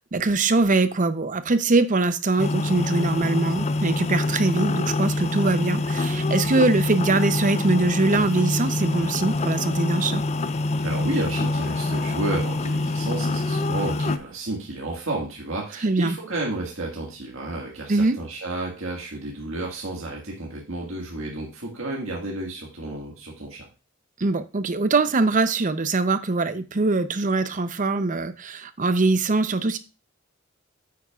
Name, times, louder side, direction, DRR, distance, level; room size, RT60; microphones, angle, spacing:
voice 1, 0.1-10.2 15.8-16.2 17.9-18.2 24.2-29.8, right 3 dB, 40° right, 11 dB, 0.7 m, -22 dB
sound 1, 2.4-14.2, left 2 dB, 35° left, 0.5 m, -25 dB
voice 2, 10.8-23.7, right 2 dB, 75° right, -2 dB, 1.8 m, -31 dB
9.1 x 8.3 x 2.4 m, 0.30 s
head